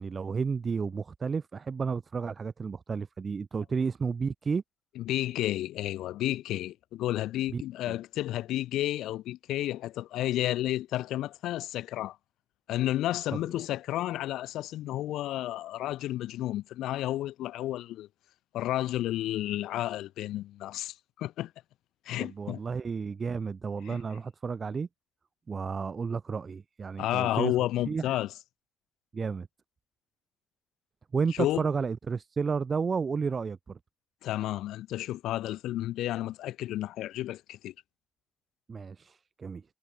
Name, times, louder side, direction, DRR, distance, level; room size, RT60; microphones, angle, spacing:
voice 1, 0.0-4.6 7.5-7.6 7.9-8.0 22.2-24.9 25.5-27.5 27.9-28.2 29.1-29.5 31.1-33.8 38.7-39.6, right 5 dB, 40° right, 1.7 m, -32 dB
voice 2, 5.0-12.2 12.7-18.1 18.5-21.5 22.1-22.6 23.9-24.0 27.0-28.3 31.4-31.6 34.2-37.7, left 14 dB, 85° left, 0.8 m, -31 dB
cardioid pair, 90°, 0 cm